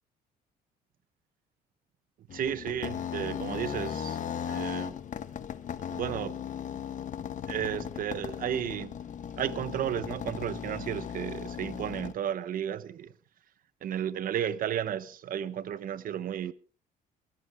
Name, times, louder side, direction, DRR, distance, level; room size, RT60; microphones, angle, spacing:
sound 1, 2.3-12.1, left 8 dB, 50° left, 1.2 m, -37 dB
voice 1, 2.3-5.0 5.9-6.4 7.5-8.9 9.4-13.1 13.8-16.5, right 10 dB, 55° right, 1.2 m, -33 dB
22.5 x 14.5 x 3.6 m
cardioid pair, 110°, 17 cm